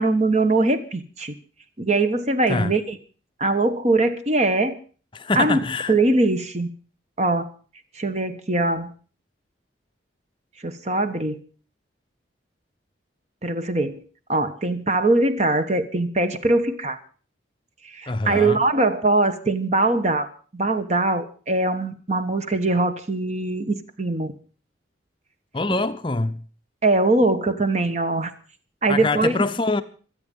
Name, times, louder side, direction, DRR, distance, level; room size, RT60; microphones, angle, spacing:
voice 1, 0.0-1.3 1.8-3.0 3.4-4.7 5.3-5.6 5.9-6.7 7.2-7.5 7.9-8.9 10.6-11.4 13.4-14.0 14.3-17.0 17.8-24.3 25.7-25.8 26.8-28.3 28.8-29.4, right 2 dB, 35° right, 1.3 m, -22 dB
voice 2, 5.1-5.9 18.1-18.6 25.5-26.4 28.9-29.8, left 3 dB, 25° left, 0.6 m, -24 dB
25.0 x 8.6 x 5.4 m
head